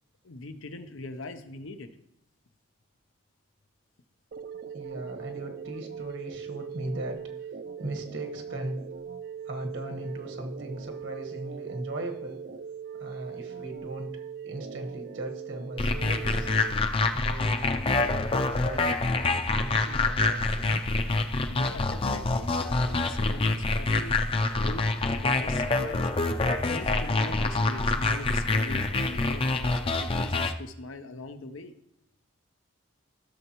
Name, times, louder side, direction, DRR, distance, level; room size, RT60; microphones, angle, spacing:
voice 1, 0.2-1.9 21.3-26.1 26.6-31.7, left 2 dB, 90° left, 9 dB, 0.8 m, -41 dB
sound 1, 4.3-16.7, right 7 dB, 50° right, 0.4 m, -40 dB
voice 2, 4.7-7.3 7.8-8.8 9.5-12.4 13.0-14.1 14.4-16.5 17.1-20.8, right 1 dB, 75° right, 3 dB, 1.5 m, -38 dB
sound 2, 15.8-30.5, left 3 dB, 30° left, 0.5 m, -26 dB
14.5 x 6.8 x 3.0 m, 0.78 s
head